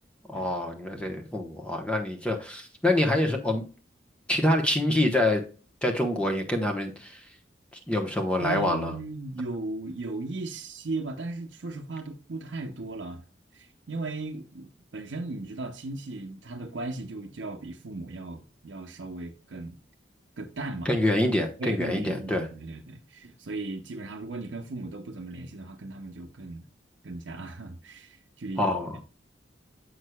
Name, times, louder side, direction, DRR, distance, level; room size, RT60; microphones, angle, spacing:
voice 1, 0.3-3.6 4.3-5.4 5.8-7.2 7.9-8.9 20.8-22.5 28.6-29.0, left 1 dB, 5° left, 0.9 m, -26 dB
voice 2, 8.4-13.2 13.5-19.8 20.4-21.0 21.6-26.6 27.0-28.8, right 2 dB, 85° right, 0.7 m, -37 dB
7.8 x 6.3 x 2.2 m
head